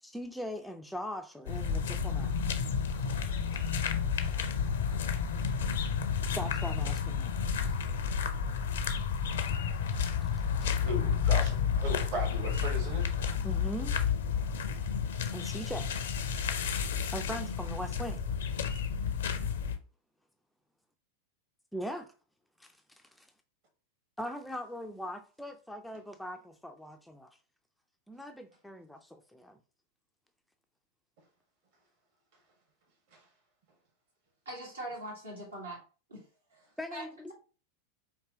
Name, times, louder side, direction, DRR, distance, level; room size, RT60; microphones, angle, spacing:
voice 1, 0.0-2.3 3.5-3.6 6.4-7.4 10.2-10.3 13.4-14.0 15.3-15.9 17.1-18.2 21.7-22.1 22.6-23.3 24.2-27.4 28.1-29.6 36.8-37.3, equal, ahead, 0.4 m, -41 dB
sound 1, 1.5-19.8, left 7 dB, 60° left, 0.5 m, -31 dB
voice 2, 10.8-13.1 33.1-33.2, right 1 dB, 50° right, 1.6 m, -37 dB
voice 3, 34.4-35.8 36.1-36.2 36.9-37.3, right 1 dB, 75° right, 1.7 m, -41 dB
4.6 x 2.8 x 2.8 m
figure-of-eight pair, 90°, 0 cm